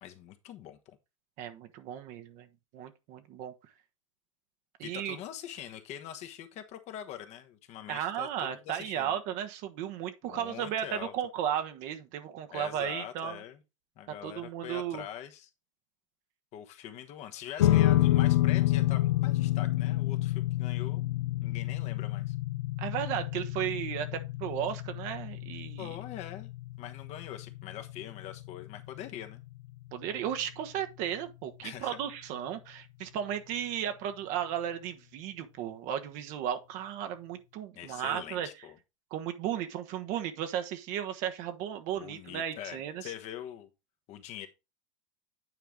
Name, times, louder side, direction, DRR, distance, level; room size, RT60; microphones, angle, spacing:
voice 1, 0.0-1.0 4.8-9.1 10.2-11.1 12.5-13.6 14.0-15.5 16.5-21.0 21.4-22.3 25.8-26.5 26.8-29.4 31.6-32.0 37.7-38.7 41.9-43.7 44.1-44.5, left 11 dB, 45° left, 1.2 m, -43 dB
voice 2, 1.4-2.5 2.7-3.5 4.8-5.2 7.9-13.4 14.2-15.0 22.8-25.9 29.9-38.5 39.1-43.0, right 10 dB, 50° right, 1.2 m, -35 dB
sound 1, 17.6-30.1, left 15 dB, 70° left, 0.7 m, -29 dB
9.3 x 4.6 x 3.7 m
hypercardioid pair, 95°, 16 cm